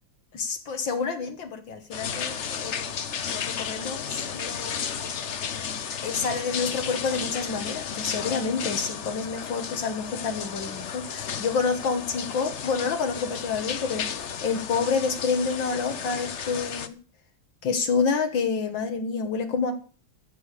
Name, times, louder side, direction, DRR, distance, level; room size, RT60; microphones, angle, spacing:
voice 1, 0.3-2.9 3.2-4.8 6.0-17.0 17.6-19.7, left 5 dB, 75° left, 5 dB, 2.1 m, -28 dB
sound 1, 1.9-16.9, left 7 dB, 50° left, 1.0 m, -33 dB
14.0 x 7.0 x 8.2 m, 0.39 s
omnidirectional pair, 2.1 m